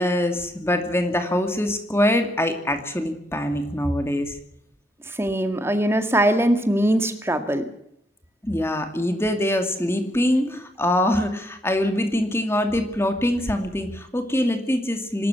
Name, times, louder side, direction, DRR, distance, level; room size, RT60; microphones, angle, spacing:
voice 1, 0.0-4.4 8.4-15.3, left 1 dB, 15° left, 6 dB, 2.5 m, -23 dB
voice 2, 5.2-7.7, right 1 dB, 15° right, 8 dB, 2.0 m, -21 dB
25.5 x 13.5 x 8.3 m, 0.73 s
head